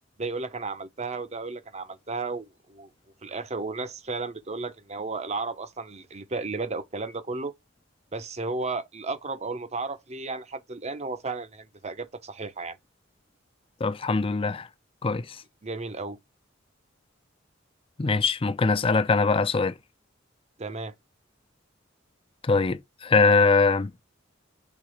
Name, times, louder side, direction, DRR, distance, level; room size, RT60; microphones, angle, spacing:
voice 1, 0.2-2.9 3.2-7.5 8.1-12.8 15.6-16.2 20.6-20.9, right 3 dB, 35° right, 0.8 m, -34 dB
voice 2, 13.8-14.7 15.0-15.4 18.0-19.7 22.4-23.9, left 4 dB, 30° left, 0.5 m, -22 dB
6.1 x 4.0 x 4.8 m
head